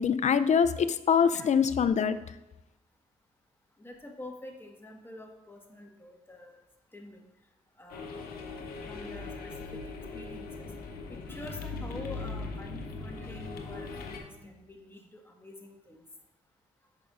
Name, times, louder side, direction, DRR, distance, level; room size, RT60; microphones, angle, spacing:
voice 1, 0.0-2.2, left 7 dB, 50° left, 13 dB, 0.4 m, -24 dB
voice 2, 3.8-6.6 6.9-7.3 7.8-8.2 8.8-10.7 11.1-16.0, left 1 dB, 15° left, 1 dB, 1.5 m, -47 dB
sound 1, 7.9-14.2, left 3 dB, 80° left, 0.8 m, -40 dB
8.2 x 5.2 x 2.5 m, 0.96 s
supercardioid pair, 55°, 15 cm